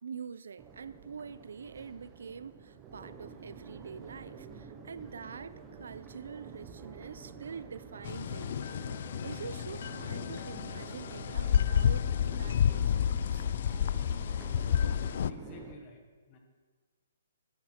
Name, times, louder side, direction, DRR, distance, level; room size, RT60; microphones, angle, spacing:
voice 1, 0.0-13.5, right 6 dB, 80° right, 15 dB, 0.5 m, -45 dB
Crowd, 0.6-15.7, right 5 dB, 15° right, 0.7 m, -49 dB
sound 1, 8.0-15.3, left 9 dB, 45° left, 0.3 m, -30 dB
voice 2, 15.3-16.4, left 3 dB, 20° left, 4 dB, 1.4 m, -51 dB
13.5 x 10.5 x 4.4 m, 1.4 s
hypercardioid pair, 170°, 0 cm